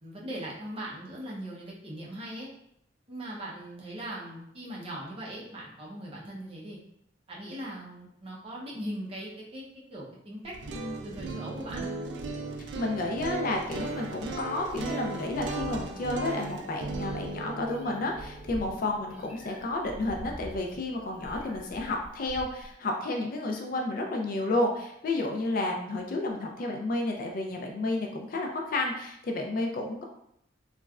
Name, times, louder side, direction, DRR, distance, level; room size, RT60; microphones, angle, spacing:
voice 1, 0.0-2.5 3.1-6.8 7.3-9.6 9.9-11.9, right 1 dB, 30° right, -4 dB, 0.7 m, -39 dB
sound 1, 10.4-20.5, right 3 dB, 70° right, 0.4 m, -37 dB
voice 2, 12.8-30.0, left 2 dB, 50° left, 1 dB, 0.4 m, -31 dB
Meow, 13.4-22.7, equal, 10° right, 1.0 m, -46 dB
3.0 x 2.4 x 2.3 m, 0.74 s
head